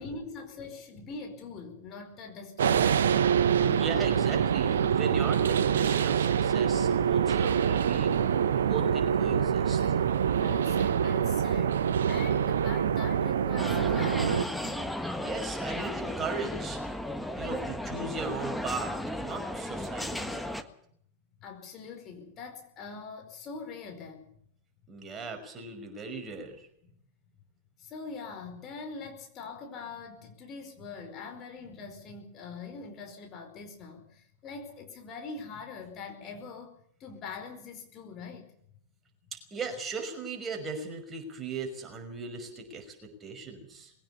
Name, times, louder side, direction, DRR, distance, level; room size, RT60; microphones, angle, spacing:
voice 1, 0.0-3.2 10.2-15.0 21.4-24.4 26.8-26.9 27.8-38.5, left 4 dB, 30° left, 4 dB, 4.9 m, -43 dB
sound 1, 2.6-14.4, right 8 dB, 65° right, 1.0 m, -25 dB
voice 2, 3.6-8.2 8.7-9.9 15.2-16.8 17.4-20.6 24.9-26.7 39.3-43.9, right 4 dB, 20° right, 4 dB, 5.6 m, -38 dB
sound 2, 13.6-20.6, left 1 dB, ahead, 1.6 m, -35 dB
21.5 x 18.0 x 7.1 m, 0.66 s
figure-of-eight pair, 90°, 0 cm